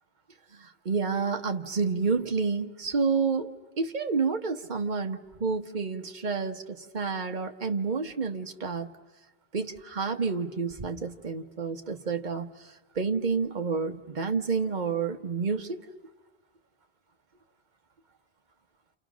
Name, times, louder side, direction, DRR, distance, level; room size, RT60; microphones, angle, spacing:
voice 1, 0.5-8.9 9.5-15.9, right 4 dB, 45° right, 5 dB, 1.4 m, -29 dB
29.5 x 28.5 x 6.2 m, 1.1 s
omnidirectional pair, 1.0 m